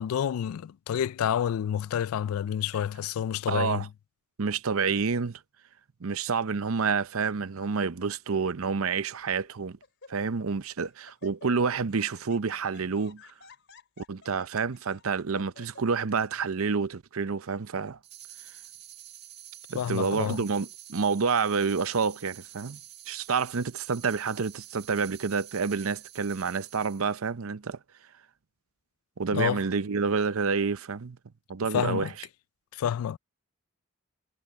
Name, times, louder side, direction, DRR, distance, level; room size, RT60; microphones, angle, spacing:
voice 1, 0.0-3.9 19.7-20.4 29.3-29.6 31.7-32.1 32.7-33.2, left 9 dB, 80° left, 0.3 m, -29 dB
voice 2, 3.5-3.9 4.4-5.4 6.0-9.8 10.1-13.2 14.0-18.0 19.7-22.8 23.1-27.8 29.2-31.2 31.5-32.1, right 5 dB, 75° right, 0.7 m, -28 dB
Laughter, 7.5-7.9 8.7-8.8 9.3-9.5 9.8-10.6 10.8-15.8, left 4 dB, 55° left, 4.9 m, -53 dB
sound 1, 18.0-27.2, right 12 dB, 50° right, 1.8 m, -48 dB
head